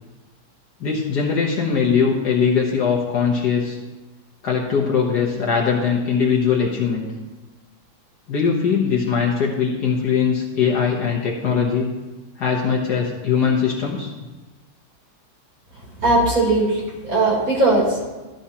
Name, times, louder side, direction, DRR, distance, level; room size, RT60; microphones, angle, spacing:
voice 1, 0.8-3.8 4.4-7.1 8.3-11.9 12.4-14.1, left 6 dB, 55° left, -2 dB, 1.5 m, -21 dB
voice 2, 16.0-18.0, right 2 dB, 40° right, -5 dB, 3.8 m, -19 dB
13.0 x 10.5 x 2.9 m, 1.2 s
omnidirectional pair, 2.3 m